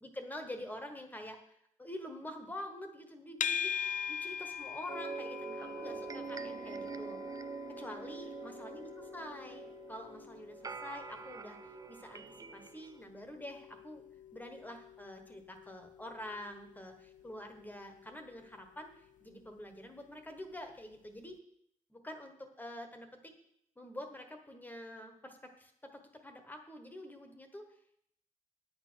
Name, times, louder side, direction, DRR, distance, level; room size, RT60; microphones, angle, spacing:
voice 1, 0.0-1.4 1.8-3.7 4.1-7.2 7.7-14.0 14.3-21.3 21.9-23.3 23.8-27.6, left 1 dB, 15° left, 5 dB, 1.2 m, -47 dB
sound 1, 3.4-20.6, left 7 dB, 85° left, 0.5 m, -44 dB
sound 2, 4.9-13.0, right 5 dB, 30° right, 0.4 m, -45 dB
9.6 x 8.6 x 6.2 m, 0.72 s
wide cardioid pair, 175°, 13 cm